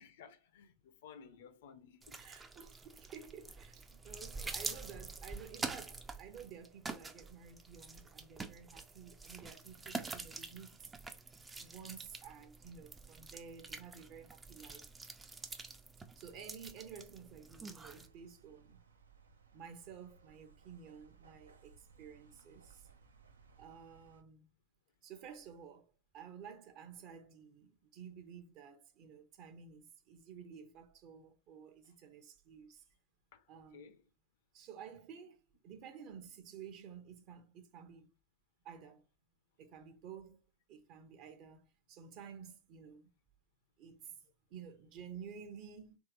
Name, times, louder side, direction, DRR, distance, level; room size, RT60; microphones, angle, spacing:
voice 1, 0.0-2.3 31.8-31.9 33.3-34.1, left 6 dB, 55° left, 0.6 m, -57 dB
sound 1, 2.0-18.1, right 3 dB, 15° right, 0.4 m, -47 dB
voice 2, 2.2-10.9 11.5-14.8 16.1-18.8 19.5-22.9 23.6-24.5 25.0-32.8 33.5-33.8 34.5-38.1 38.6-39.0 39.6-40.4 40.7-43.1 43.8-46.0, right 7 dB, 40° right, 0.8 m, -52 dB
sound 2, 17.8-24.2, right 5 dB, 70° right, 0.6 m, -63 dB
3.6 x 3.1 x 3.0 m
figure-of-eight pair, 90°, 0 cm